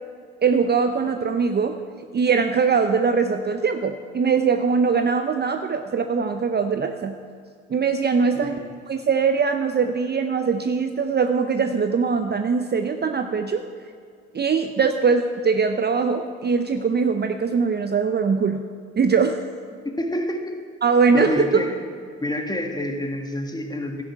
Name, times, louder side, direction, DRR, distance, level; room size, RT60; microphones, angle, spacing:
voice 1, 0.4-1.8 2.1-7.2 7.7-8.5 8.9-13.6 14.3-18.6 19.0-19.4 20.8-21.7, right 5 dB, 30° right, 7 dB, 0.7 m, -21 dB
voice 2, 8.4-8.7 19.8-20.6 21.1-21.7 22.2-24.0, left 1 dB, 10° left, 4 dB, 1.8 m, -28 dB
12.5 x 10.5 x 4.7 m, 2.2 s
hypercardioid pair, 55°, 33 cm